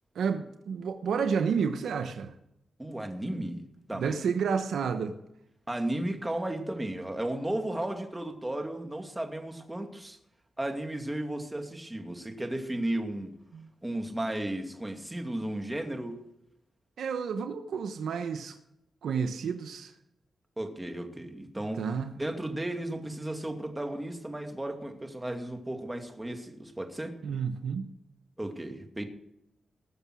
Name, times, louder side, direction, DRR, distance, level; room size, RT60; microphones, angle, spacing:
voice 1, 0.1-2.3 3.9-5.2 13.5-13.7 17.0-18.6 19.0-19.9 21.8-22.1 27.2-27.8, right 6 dB, 80° right, 1.0 m, -30 dB
voice 2, 2.8-4.2 5.7-10.2 10.6-13.3 13.8-16.2 20.6-21.8 22.1-27.2 28.4-29.0, right 1 dB, 15° right, 2.5 m, -34 dB
20.0 x 6.8 x 6.3 m
cardioid pair, 55°, 0 cm